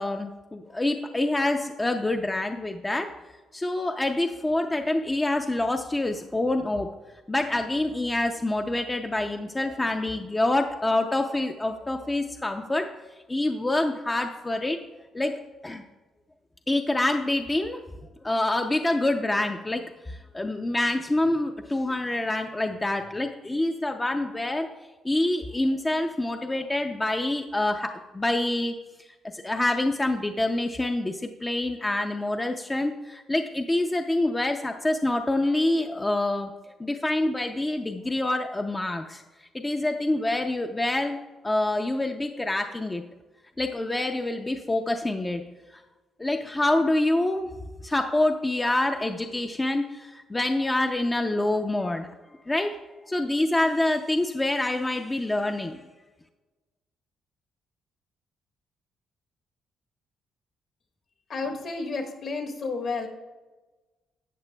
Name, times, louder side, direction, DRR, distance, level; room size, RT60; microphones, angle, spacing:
voice 1, 0.0-3.1 3.5-6.9 7.3-12.9 13.3-14.8 15.1-15.8 16.7-17.8 18.2-24.7 25.0-29.1 29.3-36.5 36.8-39.2 39.5-41.2 41.4-43.0 43.6-45.4 46.2-47.5 47.8-52.1 52.5-52.8 53.0-55.8, left 1 dB, 15° left, 5 dB, 0.4 m, -26 dB
voice 2, 61.3-63.1, left 4 dB, 55° left, 3 dB, 1.3 m, -31 dB
12.5 x 8.0 x 2.2 m, 1.2 s
cardioid pair, 100°, 0 cm